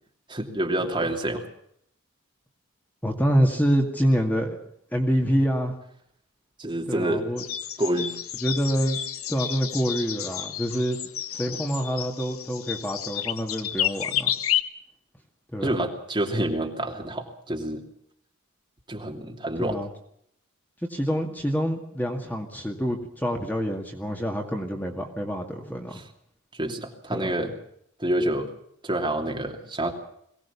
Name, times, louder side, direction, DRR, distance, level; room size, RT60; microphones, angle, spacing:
voice 1, 0.3-1.4 6.6-7.3 7.8-8.1 15.6-17.9 18.9-19.8 25.9-26.0 26.5-27.5 28.0-28.5 28.8-29.9, right 1 dB, 20° right, 2 dB, 2.9 m, -27 dB
voice 2, 3.0-4.6 4.9-5.7 6.9-7.4 8.4-9.0 9.3-11.0 11.3-14.3 15.5-15.7 19.6-19.9 20.9-26.0 27.1-27.3, equal, 10° left, 2 dB, 2.1 m, -26 dB
sound 1, 7.4-14.6, left 11 dB, 80° left, 1.2 m, -31 dB
22.5 x 18.0 x 7.1 m, 0.69 s
head